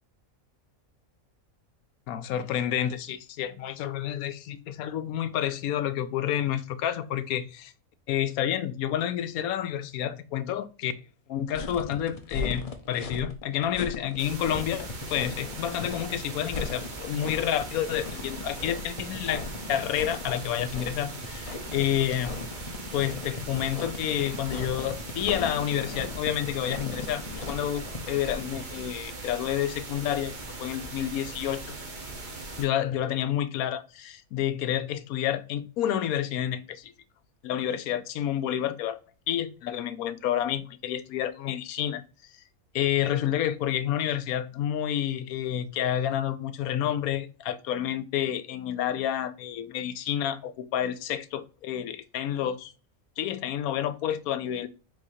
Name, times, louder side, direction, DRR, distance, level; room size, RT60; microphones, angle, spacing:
voice 1, 2.1-7.7 8.1-10.9 11.3-19.4 19.7-22.4 22.9-30.3 30.6-31.8 32.6-36.9 37.4-39.0 39.3-42.0 42.7-52.7 53.2-54.7, left 10 dB, 80° left, 1.0 m, -29 dB
sound 1, 11.5-28.6, left 3 dB, 35° left, 0.6 m, -38 dB
sound 2, 14.2-32.7, right 3 dB, 35° right, 1.1 m, -40 dB
4.9 x 3.8 x 2.7 m
omnidirectional pair, 1.5 m